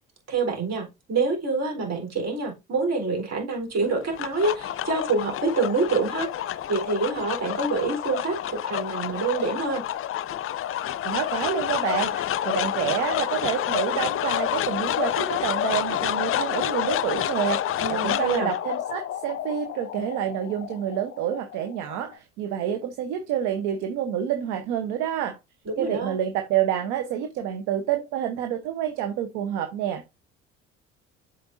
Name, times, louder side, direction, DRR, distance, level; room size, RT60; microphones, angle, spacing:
voice 1, 0.3-9.8 17.8-18.5 25.6-26.1, right 3 dB, 50° right, 3.8 m, -26 dB
sound 1, 3.8-22.2, left 11 dB, 40° left, 0.5 m, -29 dB
voice 2, 11.0-12.1 12.4-25.4 25.8-30.0, right 10 dB, 75° right, 0.9 m, -28 dB
7.8 x 5.4 x 2.6 m
hypercardioid pair, 55°, 33 cm